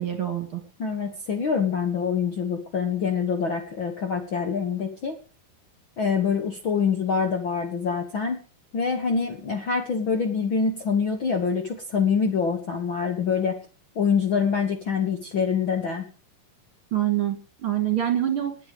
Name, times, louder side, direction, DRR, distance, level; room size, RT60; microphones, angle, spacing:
voice 1, 0.0-0.6 16.9-18.6, right 12 dB, 45° right, 6 dB, 2.8 m, -25 dB
voice 2, 0.8-5.2 6.0-8.4 8.7-13.6 14.0-16.0, left 6 dB, 50° left, 4 dB, 1.7 m, -25 dB
20.0 x 9.0 x 5.1 m, 0.37 s
omnidirectional pair, 3.8 m